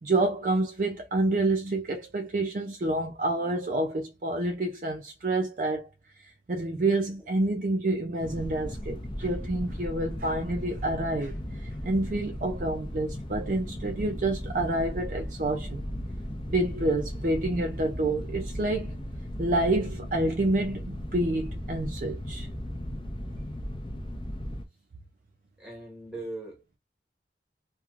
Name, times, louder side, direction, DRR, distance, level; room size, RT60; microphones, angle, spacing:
voice 1, 0.0-5.9 6.5-11.4 11.6-15.8 16.5-19.0 19.4-22.5, right 2 dB, 45° right, 0.4 m, -28 dB
sound 1, 8.2-24.7, equal, 30° left, 0.6 m, -36 dB
voice 2, 25.6-26.8, right 2 dB, 5° right, 1.2 m, -40 dB
2.9 x 2.3 x 2.4 m
head